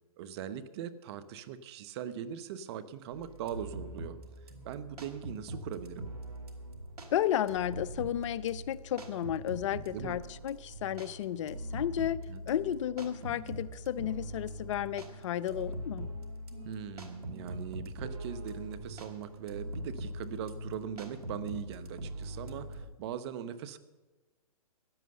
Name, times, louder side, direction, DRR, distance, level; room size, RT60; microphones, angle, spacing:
voice 1, 0.2-4.2 4.6-6.1 9.9-10.2 12.3-12.4 16.6-23.8, right 9 dB, 45° right, 14 dB, 1.1 m, -40 dB
sound 1, 3.1-22.9, right 1 dB, 85° right, 2.5 m, -42 dB
voice 2, 7.1-12.2 12.5-16.1, left 11 dB, 55° left, 19 dB, 0.6 m, -33 dB
15.5 x 11.0 x 6.7 m, 1.2 s
hypercardioid pair, 135°, 19 cm